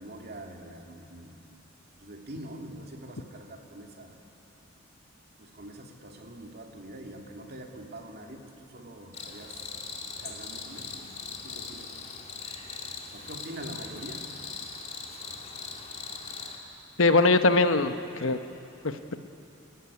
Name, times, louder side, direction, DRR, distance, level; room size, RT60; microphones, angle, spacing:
voice 1, 0.0-1.5 2.0-4.2 5.4-9.7 10.2-11.2 11.4-11.9 13.1-14.2, right 1 dB, 50° right, 1 dB, 2.5 m, -44 dB
Cricket, 9.1-16.6, left 4 dB, 35° left, 2.3 m, -40 dB
voice 2, 17.0-18.4 18.8-19.2, left 3 dB, 75° left, 9 dB, 1.0 m, -22 dB
29.0 x 14.5 x 9.8 m, 2.8 s
head